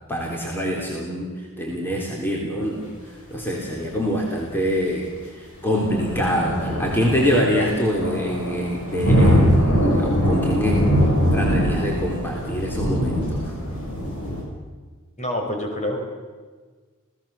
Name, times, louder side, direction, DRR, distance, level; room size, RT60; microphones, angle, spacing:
voice 1, 0.1-2.9 3.3-10.9 11.3-13.6, equal, 10° left, -2 dB, 3.6 m, -25 dB
sound 1, 5.7-14.4, equal, 85° left, 8.0 m, -22 dB
voice 2, 15.2-16.0, left 1 dB, 30° left, 1 dB, 5.0 m, -26 dB
29.5 x 17.5 x 7.0 m, 1.4 s
head